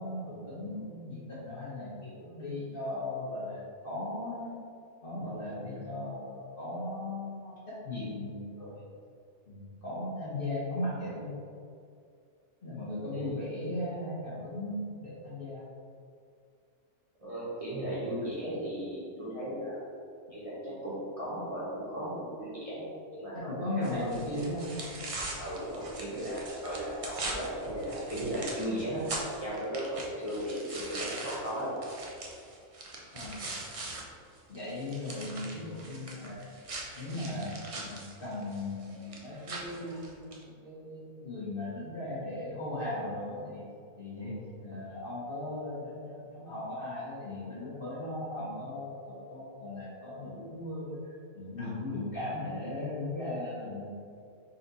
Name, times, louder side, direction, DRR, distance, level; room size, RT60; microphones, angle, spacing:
voice 1, 0.0-4.5 5.0-8.8 9.5-11.3 12.6-15.7 23.3-24.7 33.1-33.4 34.5-36.5 36.9-43.6 44.0-53.9, left 1 dB, 45° left, -8 dB, 1.2 m, -37 dB
voice 2, 17.2-19.8 20.3-23.9 25.4-31.8, equal, 25° right, -10 dB, 1.0 m, -36 dB
sound 1, 23.8-34.0 34.4-40.4, right 2 dB, 50° right, 0.4 m, -41 dB
4.1 x 3.3 x 4.0 m, 2.4 s
omnidirectional pair, 1.5 m